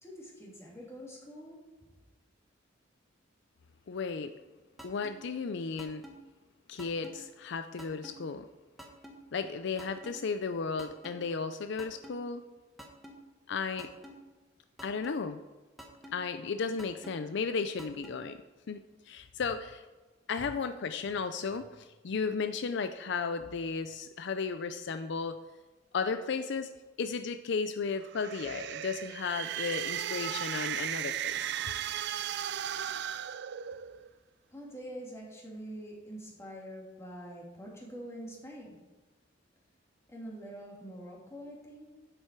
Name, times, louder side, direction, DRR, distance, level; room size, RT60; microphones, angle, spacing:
voice 1, 0.0-1.6 34.5-38.8 40.1-41.9, equal, 15° left, -3 dB, 2.8 m, -45 dB
voice 2, 3.9-4.3 4.8-6.0 6.7-8.5 9.3-12.4 13.5-13.9 14.8-15.4 16.1-18.4 18.7-19.8 20.3-25.3 25.9-26.7 27.0-31.5, left 5 dB, 65° left, 9 dB, 0.5 m, -34 dB
sound 1, 4.8-5.1 5.8-6.1 6.8-7.1 7.8-8.1 8.8-9.1 9.8-10.1 10.8-11.1 11.8-12.1 12.8-13.1 13.8-14.1 14.8-15.1 15.8-16.1 16.8-17.1 17.8-18.1, equal, ahead, 1.4 m, -47 dB
sound 2, 28.0-34.1, right 10 dB, 60° right, 0.4 m, -36 dB
10.0 x 7.7 x 4.6 m, 1.2 s
head